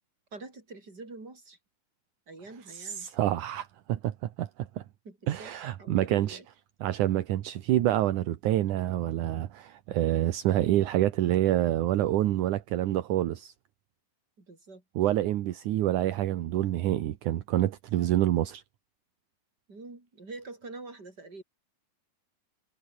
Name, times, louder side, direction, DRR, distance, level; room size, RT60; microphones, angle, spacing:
voice 1, 0.3-1.6 2.3-3.1 5.0-6.5 14.4-14.8 19.7-21.4, right 3 dB, 25° right, 5.9 m, -45 dB
voice 2, 2.7-4.8 5.3-6.4 6.8-13.5 15.0-18.6, right 13 dB, 65° right, 2.1 m, -27 dB
omnidirectional pair, 4.8 m